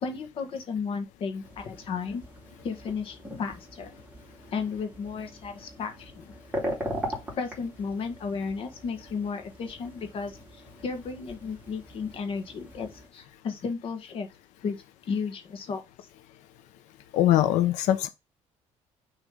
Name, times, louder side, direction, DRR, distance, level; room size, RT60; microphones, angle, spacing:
voice 1, 0.0-2.2 2.6-3.9 4.5-6.3 7.3-10.4 10.8-14.3 14.6-14.8 15.1-15.8, left 5 dB, 50° left, 1.4 m, -33 dB
sound 1, 1.4-13.1, equal, 15° right, 2.6 m, -40 dB
voice 2, 17.1-18.1, left 13 dB, 80° left, 0.7 m, -22 dB
6.3 x 3.2 x 5.2 m
cardioid pair, 145°, 12 cm